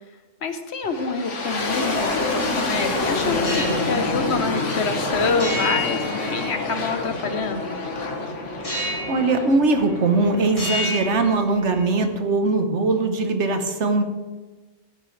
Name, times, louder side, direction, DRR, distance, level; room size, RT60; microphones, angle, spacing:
voice 1, 0.4-7.8, left 4 dB, 65° left, 8 dB, 1.2 m, -27 dB
sound 1, 0.8-11.8, left 3 dB, 85° left, 1.8 m, -27 dB
sound 2, 3.4-3.9 5.4-6.9 8.6-9.3 9.6-10.2 10.5-11.9, left 1 dB, 30° left, 2.5 m, -30 dB
voice 2, 9.1-14.0, right 3 dB, 75° right, 7 dB, 1.4 m, -21 dB
15.0 x 10.5 x 3.3 m, 1.3 s
omnidirectional pair, 1.2 m